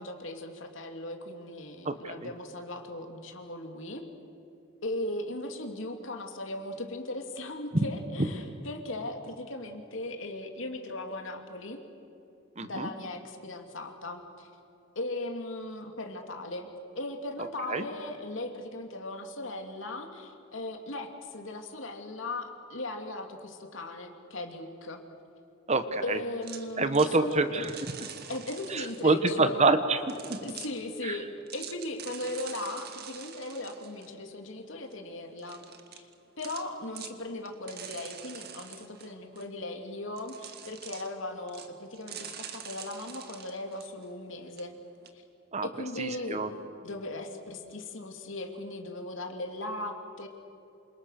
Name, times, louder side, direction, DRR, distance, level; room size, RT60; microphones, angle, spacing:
voice 1, 0.0-4.0 4.8-11.8 12.6-14.5 14.9-16.7 16.9-25.0 26.0-27.7 28.3-29.6 30.4-35.6 35.9-36.1 36.4-44.7 45.6-46.4 46.8-50.3, left 2 dB, 70° left, 4 dB, 2.9 m, -38 dB
voice 2, 1.8-2.3 8.2-8.3 12.6-12.9 17.7-17.8 25.7-26.2 26.8-27.7 28.7-30.4 31.0-31.1 45.5-45.7 46.0-46.5, right 3 dB, 35° right, 10 dB, 1.3 m, -26 dB
sound 1, 26.4-29.2 30.1-30.8 31.5-34.1 34.6-34.7 34.9-35.0 35.4-36.1 36.4-36.7 37.0-37.1 37.5-39.5 40.2-41.1 41.5-41.7 41.9-44.3 44.6-44.7 45.0-45.1, right 8 dB, 50° right, 1.9 m, -45 dB
28.0 x 27.0 x 6.7 m, 2.7 s
head